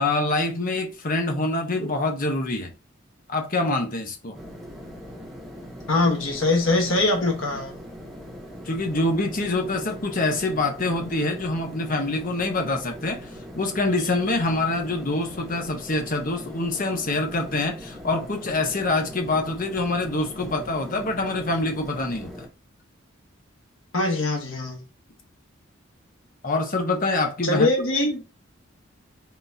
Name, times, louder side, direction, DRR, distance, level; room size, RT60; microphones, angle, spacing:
voice 1, 0.0-2.7 3.3-4.4 8.6-22.3 26.4-27.7, left 2 dB, 45° left, 0.9 m, -25 dB
sound 1, 4.3-22.5, equal, ahead, 0.8 m, -41 dB
voice 2, 5.9-7.8 23.9-24.8 27.4-28.2, left 2 dB, 75° left, 1.2 m, -22 dB
4.0 x 3.7 x 2.7 m
head